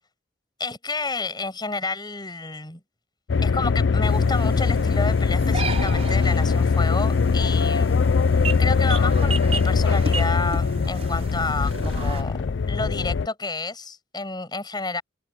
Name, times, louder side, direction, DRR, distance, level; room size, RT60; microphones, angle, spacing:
voice 1, 0.6-2.8 3.4-7.9 8.6-15.0, left 3 dB, 25° left, 7.8 m, -30 dB
sound 1, 3.3-13.3, left 5 dB, 90° left, 0.5 m, -21 dB
sound 2, 4.0-12.2, right 3 dB, 35° right, 5.8 m, -34 dB
open air
head